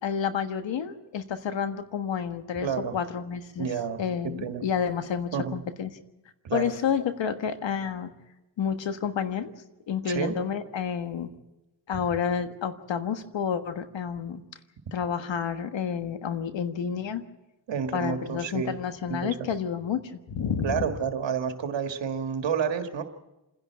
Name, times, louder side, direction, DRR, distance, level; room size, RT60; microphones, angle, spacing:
voice 1, 0.0-2.7 2.9-3.7 4.0-5.9 6.5-8.1 8.6-9.5 9.9-11.3 11.9-14.4 14.9-17.2 17.9-20.9, left 7 dB, 90° left, 9 dB, 1.5 m, -30 dB
voice 2, 2.6-2.9 3.6-4.6 5.3-5.5 6.4-6.7 10.1-10.3 17.7-18.7 19.1-19.3 20.6-23.0, right 7 dB, 85° right, 6 dB, 1.9 m, -29 dB
27.5 x 11.0 x 9.5 m, 1.0 s
cardioid pair, 65°, 43 cm